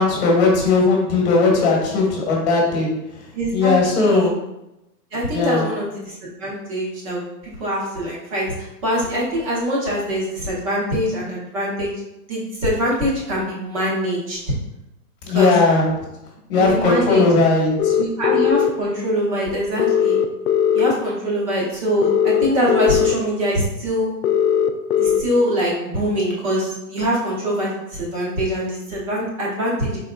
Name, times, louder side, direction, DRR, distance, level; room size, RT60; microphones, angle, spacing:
voice 1, 0.0-3.2 3.5-4.4 5.3-5.6 15.3-15.9 16.5-18.0, left 3 dB, 40° left, -1 dB, 1.2 m, -18 dB
voice 2, 3.3-4.3 5.1-7.3 7.6-11.9 12.3-14.4 15.3-15.5 16.6-17.3 18.0-20.2 20.7-24.1 25.0-30.0, equal, 20° right, -4 dB, 0.7 m, -23 dB
sound 1, 17.8-18.7 19.8-20.9 22.0-23.1 24.2-25.2, left 9 dB, 75° left, 0.6 m, -18 dB
3.9 x 3.8 x 2.2 m, 0.91 s
hypercardioid pair, 150°, 50 cm